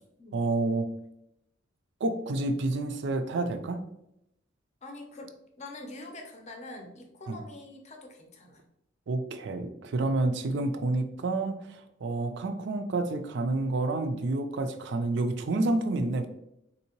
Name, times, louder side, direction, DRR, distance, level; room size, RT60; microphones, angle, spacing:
voice 1, 0.3-0.9 2.0-3.8 7.3-7.4 9.1-16.3, right 2 dB, 65° right, 8 dB, 0.4 m, -29 dB
voice 2, 4.8-5.3 5.6-8.6, left 2 dB, 35° left, 3 dB, 0.6 m, -44 dB
3.6 x 2.7 x 2.9 m, 0.79 s
head